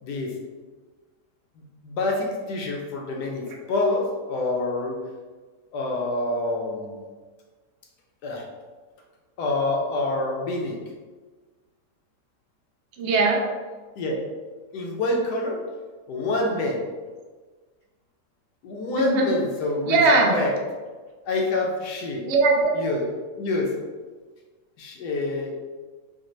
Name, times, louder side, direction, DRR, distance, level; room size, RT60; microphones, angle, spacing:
voice 1, 0.0-0.4 1.6-5.0 5.7-7.0 8.2-8.4 9.4-10.8 14.0-14.2 14.7-15.6 16.1-16.8 18.6-20.0 20.3-20.5 21.2-22.3 22.7-23.1 23.3-23.7 24.8-25.5, left 2 dB, 85° left, 0 dB, 1.2 m, -27 dB
voice 2, 13.0-13.4 18.9-19.3 19.9-20.4 22.2-22.7, right 3 dB, 75° right, 0 dB, 0.6 m, -20 dB
4.0 x 2.1 x 3.0 m, 1.4 s
omnidirectional pair, 1.7 m